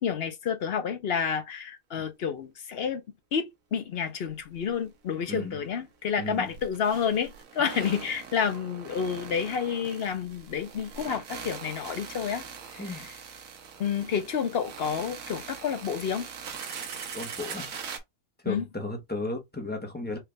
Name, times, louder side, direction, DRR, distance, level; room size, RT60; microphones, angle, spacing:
voice 1, 0.0-3.0 3.3-12.4 12.7-13.2 13.8-16.3 18.5-18.7, left 7 dB, 55° left, 0.8 m, -30 dB
sound 1, 4.3-4.4 4.7-4.8 6.3-18.0, right 6 dB, 75° right, 1.2 m, -42 dB
voice 2, 6.2-6.5 12.8-13.1 17.1-17.7 18.4-20.2, left 2 dB, 10° left, 0.7 m, -34 dB
4.6 x 2.4 x 3.2 m
omnidirectional pair, 1.5 m